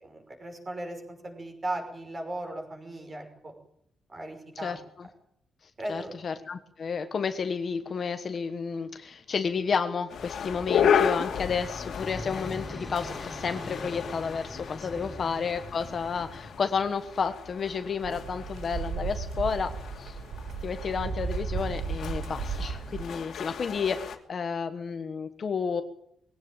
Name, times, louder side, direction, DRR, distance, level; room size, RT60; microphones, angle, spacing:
voice 1, 0.0-3.5 4.1-4.8 5.8-6.2 14.8-15.1, right 1 dB, 25° right, 4 dB, 5.7 m, -37 dB
voice 2, 4.6-5.1 5.9-19.7 20.0-20.2 20.6-25.8, left 5 dB, 35° left, 9 dB, 1.3 m, -31 dB
sound 1, 10.1-24.2, left 8 dB, 60° left, 2.7 m, -33 dB
sound 2, 11.1-17.0, left 2 dB, 15° left, 3.5 m, -42 dB
sound 3, 18.0-23.0, right 5 dB, 60° right, 4.3 m, -34 dB
21.5 x 17.5 x 8.9 m, 0.69 s
wide cardioid pair, 180°, 0 cm